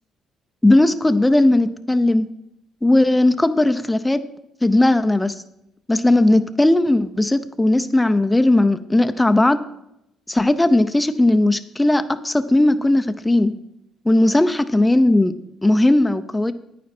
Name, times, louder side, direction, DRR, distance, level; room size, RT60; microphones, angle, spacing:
voice 1, 0.6-2.3 2.8-4.2 4.6-5.4 5.9-9.6 10.3-13.5 14.0-15.3 15.6-16.5, left 1 dB, 10° left, 10 dB, 0.5 m, -17 dB
9.3 x 9.3 x 4.4 m, 0.80 s
cardioid pair, 85°, 0 cm